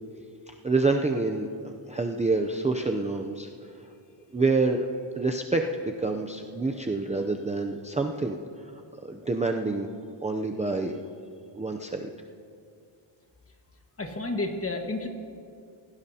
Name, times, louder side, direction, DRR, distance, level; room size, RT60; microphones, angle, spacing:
voice 1, 0.6-3.9 4.3-4.9 5.2-5.7 6.0-8.4 9.0-9.9 10.2-11.0 11.5-12.1, right 3 dB, 15° right, 3 dB, 0.5 m, -27 dB
voice 2, 14.0-15.1, left 2 dB, 30° left, 3 dB, 1.5 m, -30 dB
26.0 x 17.5 x 2.8 m, 2.4 s
wide cardioid pair, 175°, 48 cm